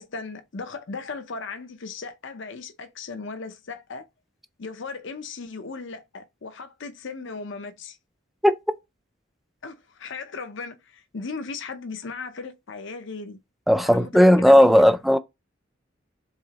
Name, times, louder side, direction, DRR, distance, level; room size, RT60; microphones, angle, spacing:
voice 1, 0.0-4.0 4.6-8.0 9.6-13.4 13.8-14.9, left 4 dB, 65° left, 0.7 m, -37 dB
voice 2, 13.7-15.2, equal, ahead, 0.3 m, -15 dB
4.8 x 3.8 x 2.9 m
head